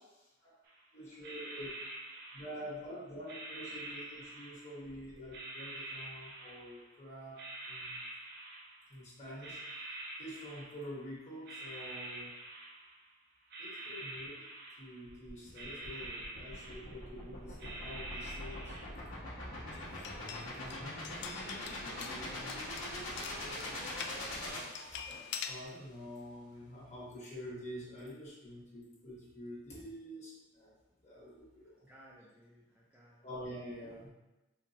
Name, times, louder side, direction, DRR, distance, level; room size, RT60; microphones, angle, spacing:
voice 1, 0.1-0.5 0.9-1.7 2.3-7.4 7.7-8.0 8.9-9.8 10.2-12.3 13.6-14.4 14.8-18.8 20.5-21.0 21.7-22.6 23.1-24.4 24.9-30.7 31.0-31.9 33.2-34.1, equal, 35° left, -6 dB, 1.3 m, -47 dB
sound 1, 0.7-0.8 1.2-2.9 3.3-4.9 5.3-7.0 7.4-9.0 9.4-11.1 11.5-13.1 13.4-15.2 15.5-17.2 17.6-18.9, right 2 dB, 55° right, 0.5 m, -46 dB
sound 2, 15.1-25.4, left 1 dB, 90° left, 1.0 m, -43 dB
sound 3, 19.7-24.2 24.7-25.6, left 7 dB, 60° left, 0.3 m, -45 dB
voice 2, 22.2-22.7 31.8-33.3 33.8-34.0, equal, 10° right, -7 dB, 0.4 m, -59 dB
4.3 x 2.4 x 2.9 m, 1.0 s
head